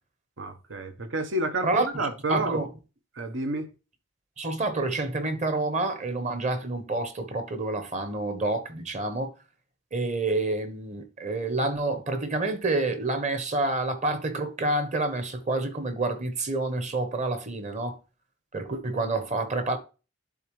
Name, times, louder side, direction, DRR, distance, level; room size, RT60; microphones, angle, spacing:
voice 1, 0.4-2.6 3.1-3.7, right 2 dB, 85° right, 1.1 m, -29 dB
voice 2, 1.6-2.7 4.4-9.3 9.9-18.0 18.5-19.8, right 2 dB, 40° right, 1.1 m, -28 dB
11.0 x 3.9 x 3.1 m
head